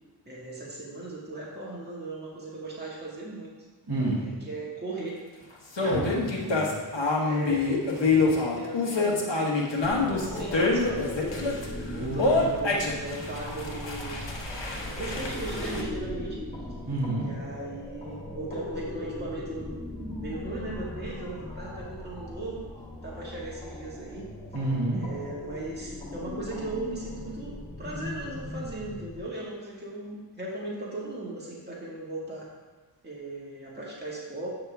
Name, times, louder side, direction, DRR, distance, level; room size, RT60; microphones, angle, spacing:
voice 1, 0.3-3.5 4.1-5.2 5.8-6.0 7.2-11.6 12.1-14.2 15.0-16.4 17.1-19.7 20.2-22.6 23.0-24.3 24.9-32.5 33.0-34.5, right 2 dB, 20° right, -5 dB, 1.8 m, -38 dB
voice 2, 3.9-4.2 5.8-6.7 11.9-12.5 16.9-17.3 24.5-25.0, right 2 dB, 55° right, -4 dB, 2.2 m, -30 dB
sound 1, 5.8-11.7 12.2-15.8, left 3 dB, 75° left, 1.3 m, -26 dB
sound 2, 9.8-29.2, left 1 dB, 15° left, 1.3 m, -38 dB
8.8 x 6.6 x 3.4 m, 1.3 s
wide cardioid pair, 65°, 44 cm